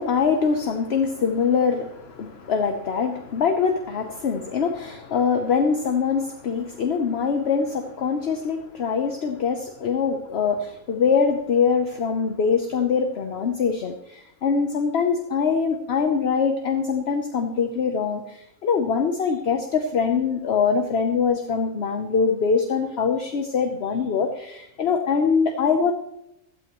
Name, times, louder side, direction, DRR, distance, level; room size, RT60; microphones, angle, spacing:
voice 1, 0.0-25.9, left 5 dB, 55° left, 5 dB, 1.0 m, -23 dB
16.0 x 12.5 x 3.0 m, 0.84 s
omnidirectional pair, 1.4 m